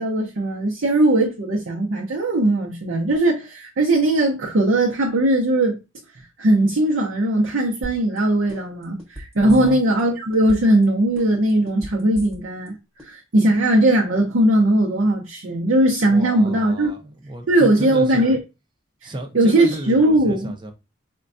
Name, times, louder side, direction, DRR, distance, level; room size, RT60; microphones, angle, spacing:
voice 1, 0.0-5.8 6.4-12.8 13.0-16.9 17.5-18.4 19.0-20.5, right 1 dB, 65° right, 0.6 m, -19 dB
sound 1, 7.8-8.2 8.5-10.0 10.3-10.8 11.2-12.7 13.0-13.1, equal, 5° left, 1.0 m, -36 dB
voice 2, 9.4-9.8 16.1-18.4 19.0-20.7, right 1 dB, 25° right, 0.6 m, -33 dB
4.4 x 2.2 x 2.5 m
head